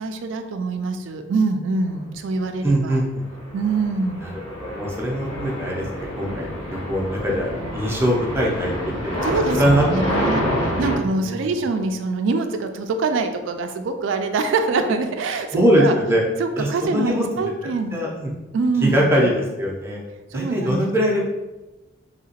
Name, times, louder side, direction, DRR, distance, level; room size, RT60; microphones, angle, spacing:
voice 1, 0.0-3.0 3.5-4.3 9.2-15.9 16.4-18.0 18.5-19.3 20.3-20.9, right 3 dB, 70° right, 7 dB, 0.3 m, -24 dB
voice 2, 2.6-3.3 4.6-9.2 9.6-10.5 11.2-11.5 15.5-16.2 16.6-17.5 17.9-18.3 18.8-20.0 20.3-21.3, equal, 10° right, -3 dB, 0.5 m, -22 dB
sound 1, 3.1-11.0, equal, 30° left, 0.8 m, -27 dB
2.9 x 2.8 x 2.8 m, 1.1 s
head